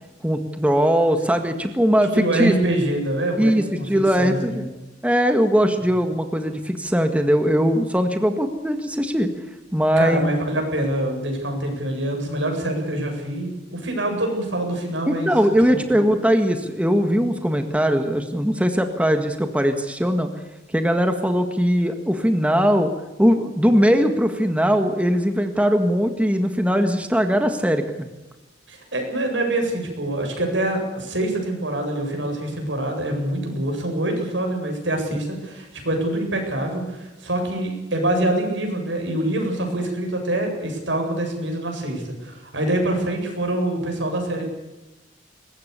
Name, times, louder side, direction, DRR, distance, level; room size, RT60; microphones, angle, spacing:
voice 1, 0.2-2.5 3.4-4.7 5.0-9.3 9.7-10.3 15.1-20.3 20.7-22.9 23.2-28.1, equal, 5° right, 6 dB, 1.7 m, -20 dB
voice 2, 2.1-3.9 4.2-4.6 10.0-15.3 15.7-16.0 28.7-44.5, right 1 dB, 85° right, 2 dB, 8.0 m, -25 dB
23.5 x 20.0 x 6.9 m, 1.0 s
head